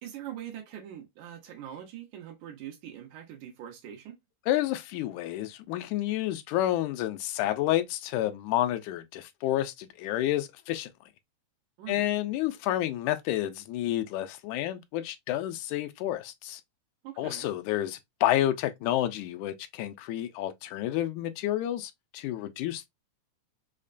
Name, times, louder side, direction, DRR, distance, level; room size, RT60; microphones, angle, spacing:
voice 1, 0.0-4.2 11.8-12.3 17.0-17.5, right 10 dB, 85° right, 2.5 m, -43 dB
voice 2, 4.5-10.9 11.9-16.6 17.2-22.9, left 13 dB, 90° left, 2.0 m, -30 dB
5.6 x 2.2 x 2.4 m
omnidirectional pair, 3.4 m